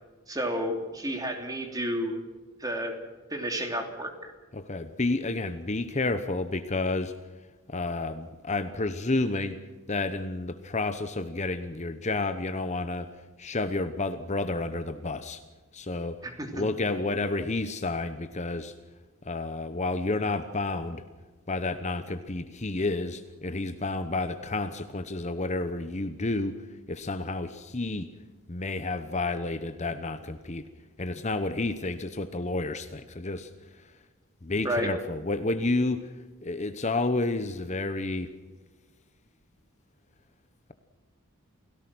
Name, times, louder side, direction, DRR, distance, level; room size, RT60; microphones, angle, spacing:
voice 1, 0.3-2.2 2.6-2.9 3.3-4.1 16.2-16.7 34.6-34.9, equal, 15° right, 4 dB, 3.0 m, -31 dB
voice 2, 4.5-7.1 7.7-9.6 9.9-13.1 13.4-15.4 15.7-16.2 16.5-18.7 19.2-21.0 21.5-28.1 28.5-30.7 31.0-33.5 34.4-36.1 36.4-38.3, left 2 dB, 30° left, 10 dB, 1.0 m, -30 dB
28.5 x 17.5 x 6.2 m, 1.3 s
head